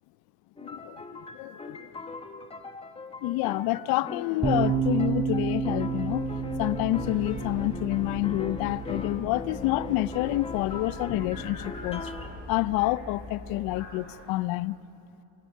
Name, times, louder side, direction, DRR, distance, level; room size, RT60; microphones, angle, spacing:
voice 1, 0.6-1.0 1.3-1.9 3.2-6.3 6.6-12.1 12.5-14.7, left 17 dB, 70° left, 0.6 m, -28 dB
sound 1, 0.6-12.3, left 3 dB, 15° left, 1.1 m, -40 dB
sound 2, 4.4-13.8, right 6 dB, 10° right, 1.1 m, -33 dB
Subway metro underground, 5.8-14.2, left 3 dB, 45° left, 7.3 m, -44 dB
27.0 x 23.0 x 6.5 m
cardioid pair, 130°, 37 cm